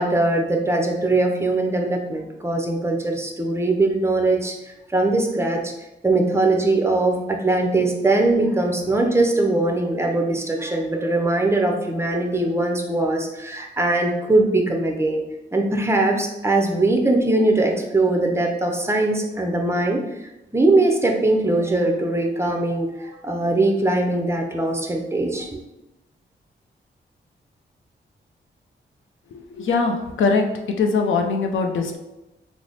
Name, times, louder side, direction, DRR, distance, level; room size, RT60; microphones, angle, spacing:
voice 1, 0.0-4.6 4.9-5.7 6.0-15.2 15.5-20.0 20.5-25.6, right 2 dB, 15° right, 2 dB, 0.6 m, -21 dB
voice 2, 29.3-30.4 30.8-32.0, left 4 dB, 80° left, 3 dB, 0.5 m, -21 dB
3.2 x 2.0 x 3.9 m, 0.97 s
cardioid pair, 65°, 20 cm